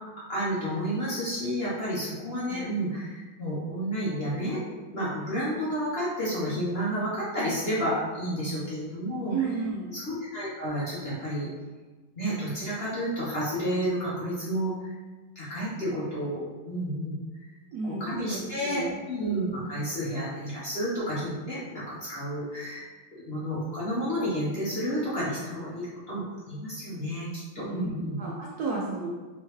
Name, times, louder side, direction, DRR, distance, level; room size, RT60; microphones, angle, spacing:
voice 1, 0.3-4.6 4.9-9.5 9.9-11.5 12.2-14.9 15.3-17.2 17.9-22.9 23.1-27.3 27.5-28.2, equal, 45° left, -9 dB, 0.8 m, -31 dB
voice 2, 9.3-9.9 17.7-19.0 27.6-29.1, right 4 dB, 80° right, -3 dB, 0.8 m, -33 dB
3.6 x 3.3 x 3.1 m, 1.3 s
omnidirectional pair, 2.2 m